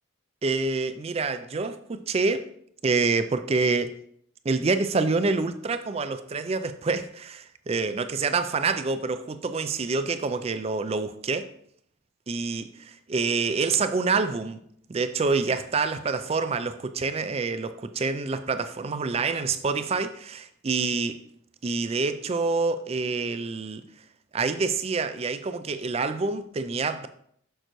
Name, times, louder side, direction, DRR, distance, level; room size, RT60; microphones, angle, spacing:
voice 1, 0.4-2.5 2.8-3.9 4.4-11.5 12.3-14.6 14.9-21.2 21.6-23.8 24.3-27.1, right 4 dB, 30° right, 0.3 m, -27 dB
6.6 x 6.5 x 3.0 m
head